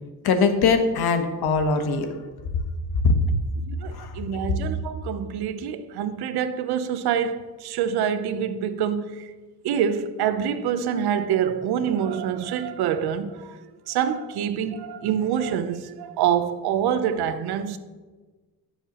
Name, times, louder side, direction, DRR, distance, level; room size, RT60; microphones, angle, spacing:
voice 1, 0.2-2.1 3.0-3.1 3.9-4.1, left 4 dB, 80° left, 1.3 m, -21 dB
voice 2, 3.7-9.3 9.6-13.6 13.9-17.8, right 8 dB, 90° right, 0.8 m, -26 dB
15.0 x 6.8 x 2.9 m
cardioid pair, 90°, 37 cm